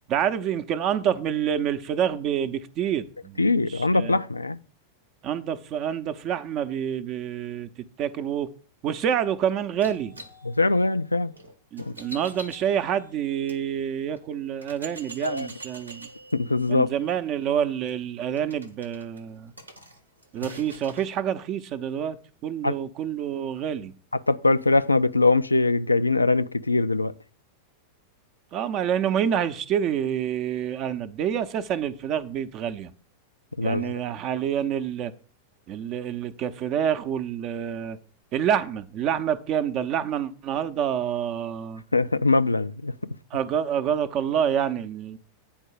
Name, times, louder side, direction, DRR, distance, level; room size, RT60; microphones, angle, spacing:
voice 1, 0.1-4.2 5.2-7.7 8.0-8.5 8.8-10.1 11.7-16.1 16.7-19.5 20.3-22.2 22.4-23.9 28.5-32.9 33.6-35.1 35.7-38.0 38.3-41.8 43.3-45.2, right 9 dB, 35° right, 0.7 m, -27 dB
voice 2, 3.4-4.6 10.4-11.3 11.8-11.9 15.2-15.5 16.3-16.9 22.6-22.7 24.3-27.1 33.6-33.9 41.9-43.2, left 3 dB, 80° left, 0.3 m, -22 dB
sound 1, 9.8-13.6 14.2-14.3 14.6-21.1, right 1 dB, 80° right, 1.0 m, -45 dB
8.8 x 4.6 x 6.5 m
figure-of-eight pair, 90°, 0 cm